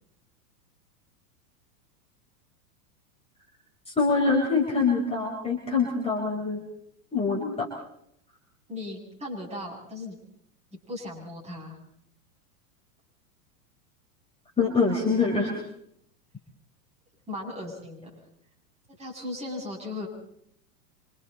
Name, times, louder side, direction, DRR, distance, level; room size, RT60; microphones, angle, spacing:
voice 1, 3.9-6.6 7.1-7.7 14.6-15.6, left 4 dB, 10° left, -1 dB, 4.0 m, -24 dB
voice 2, 8.7-10.2 10.9-11.8 17.3-18.1 19.0-20.1, left 2 dB, 15° right, -2 dB, 7.8 m, -37 dB
27.0 x 26.5 x 4.2 m, 0.73 s
supercardioid pair, 135°, 47 cm